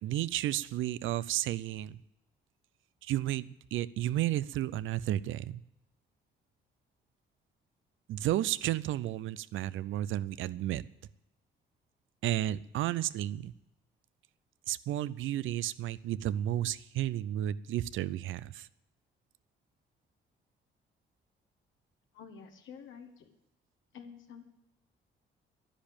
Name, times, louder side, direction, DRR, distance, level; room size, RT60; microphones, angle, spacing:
voice 1, 0.0-2.0 3.0-5.6 8.1-10.8 12.2-13.5 14.7-18.7, right 13 dB, 80° right, 18 dB, 0.6 m, -32 dB
voice 2, 22.1-23.3 23.9-24.4, left 6 dB, 75° left, 4 dB, 1.6 m, -49 dB
10.5 x 10.0 x 8.8 m, 0.89 s
cardioid pair, 90°, 20 cm